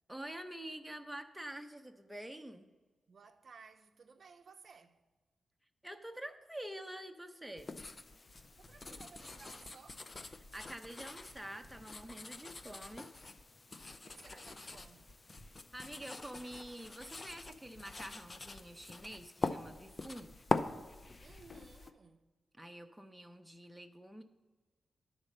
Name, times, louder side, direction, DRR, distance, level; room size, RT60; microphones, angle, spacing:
voice 1, 0.1-2.7 5.8-7.8 10.5-13.1 15.7-20.4 22.6-24.2, right 1 dB, 5° right, 0.7 m, -47 dB
voice 2, 3.1-5.0 8.6-10.1 14.0-15.2 21.2-22.3, right 5 dB, 60° right, 0.4 m, -58 dB
sound 1, 7.6-21.9, left 3 dB, 35° left, 0.5 m, -43 dB
9.7 x 4.1 x 6.6 m
cardioid pair, 70°, 0 cm